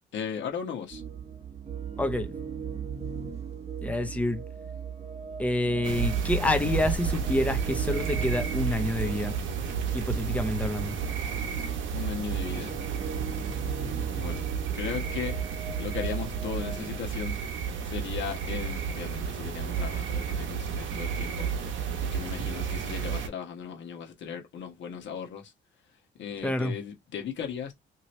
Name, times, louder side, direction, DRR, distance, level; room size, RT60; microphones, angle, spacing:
voice 1, 0.1-1.0 11.9-12.8 14.1-14.5 14.7-15.3 15.8-17.3 17.8-21.5 22.0-25.5 26.2-27.7, left 7 dB, 70° left, 1.2 m, -37 dB
sound 1, 0.9-17.0, right 7 dB, 30° right, 0.9 m, -38 dB
voice 2, 2.0-2.3 3.8-4.4 5.4-9.4 9.9-10.9 26.4-26.7, left 1 dB, 5° left, 0.6 m, -28 dB
sound 2, 5.8-23.3, right 6 dB, 75° right, 0.8 m, -32 dB
2.9 x 2.9 x 3.1 m
cardioid pair, 90°, 20 cm